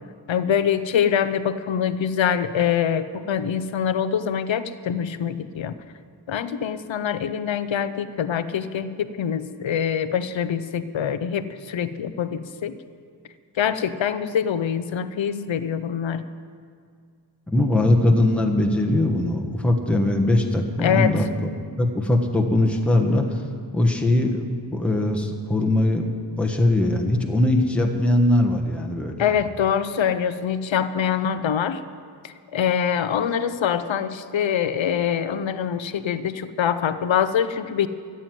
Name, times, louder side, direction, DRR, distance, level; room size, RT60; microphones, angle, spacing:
voice 1, 0.3-5.7 6.3-12.8 13.6-16.2 20.8-21.1 29.2-31.8 32.2-37.9, left 8 dB, 75° left, 12 dB, 0.7 m, -24 dB
voice 2, 17.5-21.5 21.8-23.4 23.7-26.1 26.4-29.3, left 1 dB, 5° left, 2 dB, 1.3 m, -21 dB
14.0 x 7.8 x 9.2 m, 2.2 s
wide cardioid pair, 100°, 46 cm